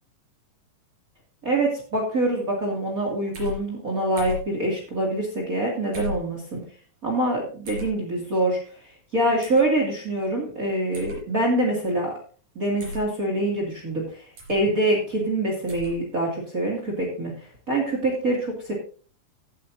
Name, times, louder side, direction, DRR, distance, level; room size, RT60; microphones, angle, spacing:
voice 1, 1.4-6.6 7.0-8.6 9.1-12.1 12.5-18.7, right 1 dB, 30° right, -1 dB, 2.5 m, -25 dB
sound 1, 3.3-3.6 4.2-4.5 5.9-6.2 7.7-7.9 9.4-9.6 10.9-11.2 12.8-13.1 14.4-14.6 15.7-15.9, left 2 dB, 60° right, 5.5 m, -34 dB
16.5 x 8.4 x 2.7 m, 0.40 s
omnidirectional pair, 3.8 m